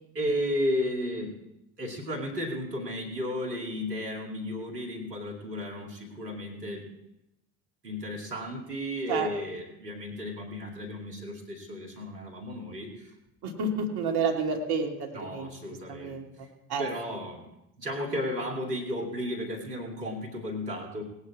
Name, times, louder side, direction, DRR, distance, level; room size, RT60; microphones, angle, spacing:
voice 1, 0.1-1.3 1.8-6.9 7.8-13.1 15.1-16.2 16.8-17.5 17.8-21.0, left 1 dB, 90° right, 1 dB, 2.6 m, -33 dB
voice 2, 13.4-15.5 15.9-16.9, right 4 dB, 50° right, 2 dB, 2.7 m, -30 dB
18.0 x 9.7 x 4.9 m, 0.86 s
hypercardioid pair, 70°, 47 cm